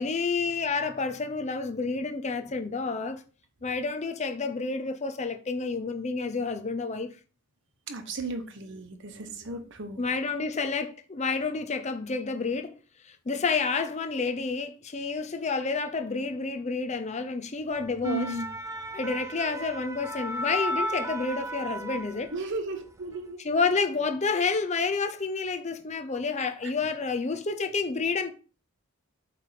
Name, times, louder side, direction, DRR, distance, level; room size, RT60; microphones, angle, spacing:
voice 1, 0.0-3.2 3.6-7.1 10.0-12.8 13.0-18.4 18.9-22.3 23.4-28.3, left 4 dB, 30° left, 0.6 m, -29 dB
voice 2, 7.9-10.0 18.0-18.5 22.3-23.4 26.4-26.7, right 3 dB, 55° right, 1.1 m, -35 dB
sound 1, 17.8-22.6 22.9-23.2, right 1 dB, 15° right, 0.4 m, -34 dB
8.3 x 3.4 x 5.0 m
head